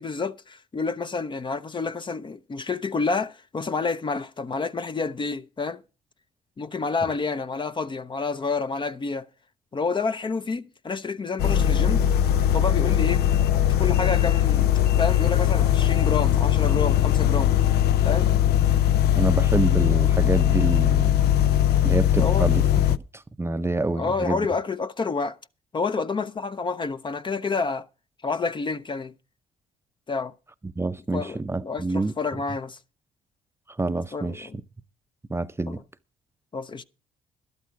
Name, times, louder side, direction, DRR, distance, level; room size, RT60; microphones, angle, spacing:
voice 1, 0.0-5.8 6.6-9.2 9.7-12.0 12.5-13.3 13.5-14.7 15.0-17.6 18.0-18.3 22.1-22.5 23.9-25.4 25.7-27.9 28.2-29.1 30.1-30.3 31.1-32.8 34.1-34.6 35.7-35.8 36.5-36.8, left 4 dB, 30° left, 0.7 m, -29 dB
sound 1, 11.4-23.0, left 11 dB, 80° left, 0.5 m, -20 dB
voice 2, 19.2-21.2 21.8-22.6 22.9-23.0 23.4-24.5 30.8-32.1 33.8-34.5 35.3-35.8, right 2 dB, 15° right, 0.6 m, -27 dB
12.0 x 12.0 x 4.7 m
cardioid pair, 85°, 16 cm